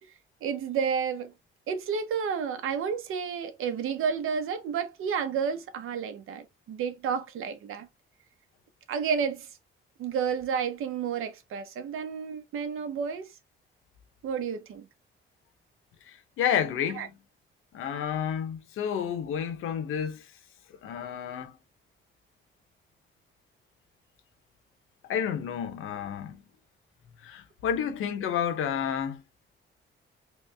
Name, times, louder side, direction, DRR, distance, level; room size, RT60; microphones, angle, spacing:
voice 1, 0.4-1.3 1.7-7.9 8.9-9.5 10.0-13.3 14.2-14.9 16.9-17.1, right 6 dB, 85° right, 0.8 m, -31 dB
voice 2, 16.4-17.1 17.7-20.2 20.8-21.5 25.1-26.4 27.2-29.2, left 8 dB, 90° left, 0.9 m, -30 dB
3.2 x 3.1 x 3.3 m
cardioid pair, 155°, 21 cm